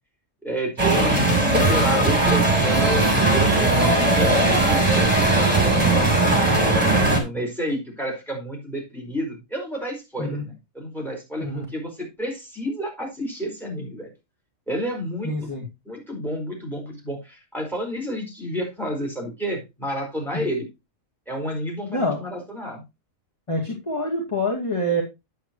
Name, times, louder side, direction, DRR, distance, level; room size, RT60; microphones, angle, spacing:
voice 1, 0.4-6.1 7.0-14.1 14.7-15.3 15.8-20.7 21.3-22.8, equal, ahead, 0 dB, 4.5 m, -30 dB
sound 1, 0.8-7.2, right 2 dB, 25° right, 3.2 m, -19 dB
voice 2, 15.2-15.6 20.3-20.5 21.9-22.2 23.5-25.0, equal, 20° left, -1 dB, 2.1 m, -26 dB
10.0 x 8.6 x 3.0 m, 0.24 s
omnidirectional pair, 1.4 m